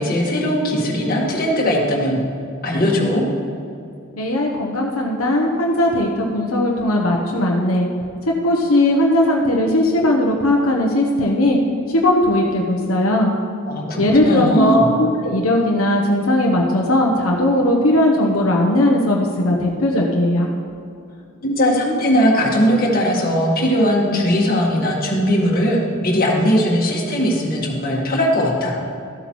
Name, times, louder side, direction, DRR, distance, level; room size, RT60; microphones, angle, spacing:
voice 1, 0.0-2.2 2.6-3.2 13.7-14.9 21.4-28.8, equal, 45° left, -2 dB, 1.7 m, -19 dB
voice 2, 4.2-7.9 8.4-11.6 11.9-13.3 14.0-20.5, left 1 dB, 80° left, -1 dB, 0.9 m, -18 dB
13.5 x 8.0 x 3.1 m, 2.5 s
head